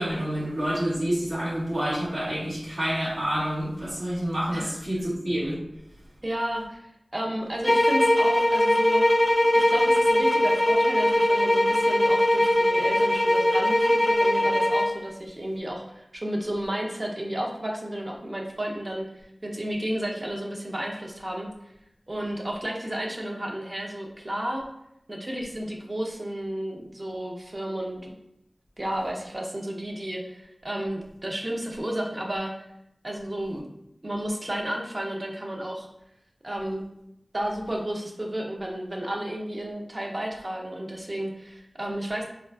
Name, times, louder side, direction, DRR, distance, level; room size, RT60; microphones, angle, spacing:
voice 1, 0.0-5.6, equal, 85° right, -8 dB, 1.3 m, -28 dB
voice 2, 6.2-9.0 9.5-19.1 19.4-21.5 22.1-24.6 25.1-28.1 28.8-32.5 33.0-33.6 34.0-35.9 36.4-36.8 37.3-42.2, right 1 dB, 45° right, 0 dB, 0.6 m, -32 dB
sound 1, 7.6-15.0, left 1 dB, 20° left, 0.4 m, -21 dB
3.7 x 2.3 x 2.3 m, 0.79 s
wide cardioid pair, 40°, 0 cm